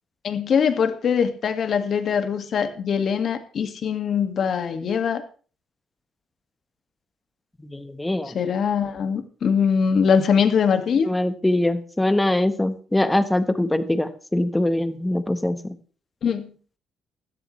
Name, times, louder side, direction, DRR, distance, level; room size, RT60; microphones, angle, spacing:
voice 1, 0.2-5.2 8.3-11.1 16.2-16.5, left 6 dB, 50° left, 7 dB, 2.0 m, -22 dB
voice 2, 7.6-8.3 11.0-15.7, left 1 dB, 10° left, 10 dB, 1.3 m, -23 dB
16.5 x 13.0 x 3.3 m, 0.40 s
cardioid pair, 120°, 0 cm